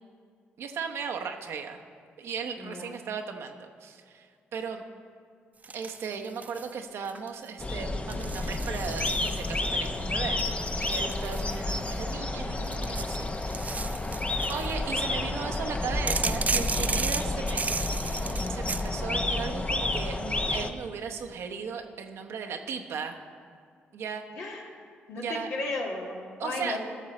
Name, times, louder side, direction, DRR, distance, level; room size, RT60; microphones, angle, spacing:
voice 1, 0.6-1.8 2.2-4.8 5.7-14.0 14.5-23.2 23.9-24.2 25.2-25.5 26.4-26.8, right 6 dB, 70° right, 4 dB, 0.9 m, -37 dB
voice 2, 2.6-2.9 11.3-11.4 24.3-24.7 25.1-26.8, left 2 dB, 75° left, -1 dB, 1.8 m, -35 dB
sound 1, 5.6-6.7 7.0-7.5 8.1-9.7 10.4-12.1 12.6-14.7 16.1-18.9, right 4 dB, 35° right, 0.4 m, -34 dB
sound 2, 7.6-20.7, left 2 dB, 25° left, 0.8 m, -30 dB
14.5 x 6.5 x 4.3 m, 2.2 s
supercardioid pair, 55°, 5 cm